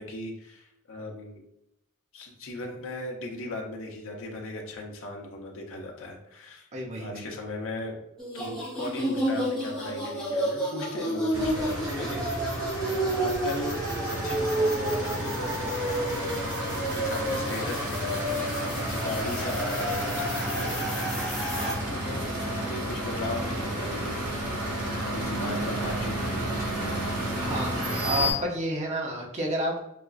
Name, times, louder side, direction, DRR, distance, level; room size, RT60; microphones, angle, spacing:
voice 1, 0.0-1.4 2.1-6.7 7.0-8.0 8.3-13.9 14.2-24.3 24.9-27.1, left 2 dB, 60° left, 1 dB, 0.7 m, -38 dB
voice 2, 6.7-7.3 21.5-21.8 27.4-29.8, right 1 dB, 30° right, -1 dB, 0.6 m, -31 dB
sound 1, 8.2-21.7, right 1 dB, ahead, 1.0 m, -30 dB
sound 2, 11.3-28.3, right 1 dB, 80° right, 1.3 m, -32 dB
4.8 x 2.4 x 2.3 m, 0.83 s
head